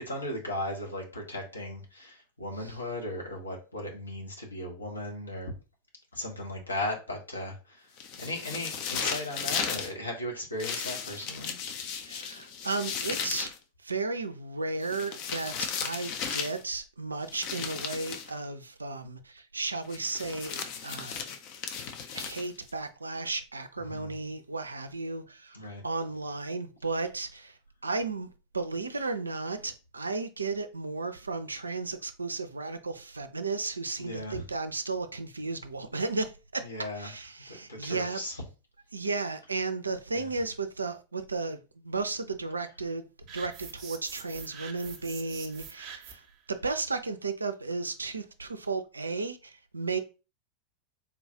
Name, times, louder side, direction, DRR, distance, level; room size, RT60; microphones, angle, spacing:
voice 1, 0.1-5.5 6.1-7.9 8.2-11.6 23.9-24.1 25.5-25.8 34.0-34.4 36.6-37.1 37.5-38.4 40.1-40.3, left 1 dB, 80° left, 1.0 m, -37 dB
sound 1, 8.0-9.9 10.6-13.6 14.8-16.6 17.3-18.3 19.9-22.7, left 6 dB, 45° left, 0.5 m, -35 dB
voice 2, 12.0-13.5 13.8-21.2 22.1-25.6 25.8-28.3 28.5-36.6 37.0-38.2 38.9-43.1 43.3-46.2 46.5-50.0, right 3 dB, 80° right, 0.4 m, -34 dB
sound 2, 43.3-46.3, right 7 dB, 40° right, 0.6 m, -45 dB
3.8 x 2.3 x 2.7 m
figure-of-eight pair, 90°, 0 cm